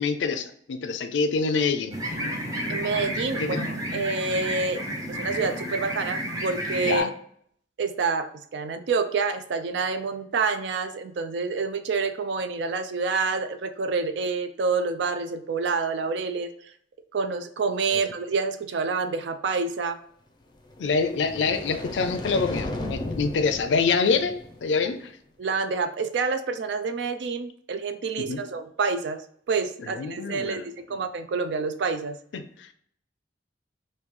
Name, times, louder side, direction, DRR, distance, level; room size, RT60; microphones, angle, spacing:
voice 1, 0.0-1.9 3.4-3.7 6.9-7.1 17.9-18.0 20.8-25.1 28.3-28.4 29.9-30.7 32.3-32.7, left 4 dB, 80° left, 8 dB, 0.4 m, -26 dB
sound 1, 1.9-7.0, equal, 20° right, 0.8 m, -31 dB
voice 2, 2.7-4.8 5.1-7.1 7.8-16.5 17.1-20.0 25.4-32.2, right 4 dB, 70° right, 9 dB, 0.4 m, -28 dB
sound 2, 20.7-24.9, left 1 dB, 25° left, 0.5 m, -35 dB
3.1 x 2.7 x 3.6 m, 0.63 s
head